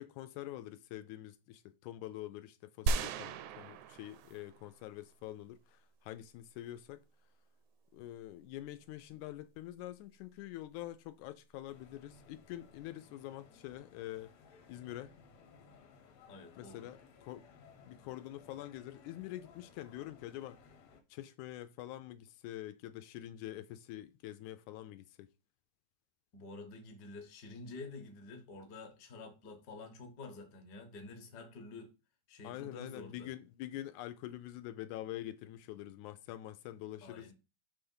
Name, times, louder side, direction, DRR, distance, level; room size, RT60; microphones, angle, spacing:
voice 1, 0.0-7.0 7.9-14.3 14.7-15.1 16.6-17.5 17.8-20.6 21.1-25.3 32.4-37.3, left 14 dB, 85° left, 1.9 m, -46 dB
sound 1, 2.9-4.8 5.1-5.2, right 4 dB, 80° right, 1.9 m, -36 dB
sound 2, 11.7-21.0, left 5 dB, 65° left, 2.0 m, -60 dB
voice 2, 16.3-16.9 26.3-31.9 32.3-33.3 37.0-37.3, left 3 dB, 50° left, 1.3 m, -49 dB
6.1 x 3.4 x 5.4 m
omnidirectional pair, 3.5 m